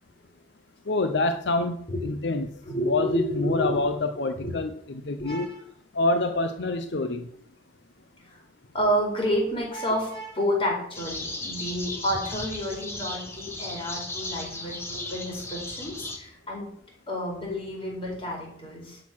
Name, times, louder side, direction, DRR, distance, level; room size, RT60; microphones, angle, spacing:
voice 1, 0.9-2.5 2.8-4.7 5.0-5.5 5.9-7.3, left 2 dB, 75° left, 8 dB, 0.7 m, -26 dB
voice 2, 2.6-3.8 4.4-4.5 5.2-5.6 8.2-8.4 8.7-16.7 17.1-19.0, equal, 30° left, -2 dB, 4.5 m, -30 dB
sound 1, 10.9-16.2, left 2 dB, 15° left, 1.6 m, -36 dB
11.5 x 6.6 x 6.1 m, 0.69 s
head